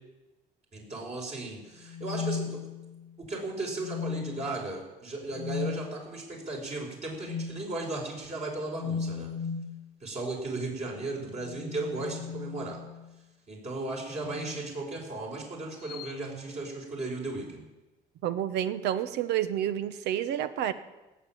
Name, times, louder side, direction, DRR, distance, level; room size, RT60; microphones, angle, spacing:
voice 1, 0.7-2.7 3.2-9.3 10.0-12.8 13.5-17.6, right 2 dB, 40° right, -1 dB, 4.9 m, -36 dB
sound 1, 1.8-3.1 3.7-4.5 5.3-5.8 7.2-7.6 8.7-9.8 11.2-13.1 14.2-14.6 15.8-16.1, left 6 dB, 75° left, 1.1 m, -36 dB
voice 2, 18.2-20.7, right 11 dB, 80° right, 12 dB, 1.0 m, -29 dB
17.5 x 7.4 x 8.9 m, 1.1 s
cardioid pair, 110°, 17 cm